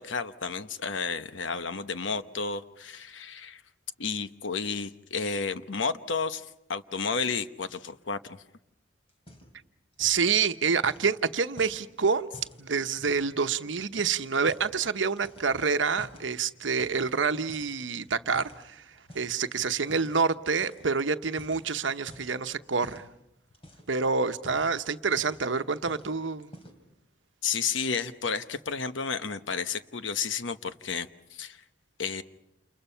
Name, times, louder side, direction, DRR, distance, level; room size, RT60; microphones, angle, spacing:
voice 1, 0.0-3.6 4.0-8.4 27.4-31.6 32.0-32.2, left 5 dB, 80° left, 11 dB, 1.0 m, -32 dB
sound 1, 9.1-9.7 9.9-10.3 10.8-13.4 13.8-14.8 15.2-16.3 16.8-17.2 17.5-19.4 19.9-20.2 20.6-20.9 21.2-22.4 22.8-23.1 23.5-24.0 24.3-25.5 25.9-26.1 26.4-26.9, left 1 dB, 30° left, 3.7 m, -49 dB
voice 2, 10.0-12.3 12.6-18.8 19.1-23.0 23.9-26.5, right 5 dB, 80° right, 10 dB, 1.0 m, -27 dB
29.0 x 29.0 x 5.7 m, 0.86 s
head